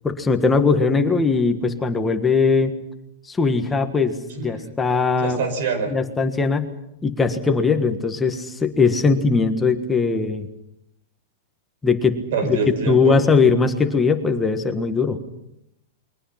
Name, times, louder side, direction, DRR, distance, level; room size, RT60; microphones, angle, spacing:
voice 1, 0.0-2.7 3.3-5.4 5.9-6.7 7.0-10.5 11.8-12.6 12.9-15.2, left 4 dB, 10° left, 6 dB, 1.6 m, -20 dB
voice 2, 5.2-6.0 12.3-13.2, right 5 dB, 60° right, 10 dB, 5.1 m, -25 dB
28.5 x 22.5 x 5.8 m, 0.78 s
supercardioid pair, 160°, 0 cm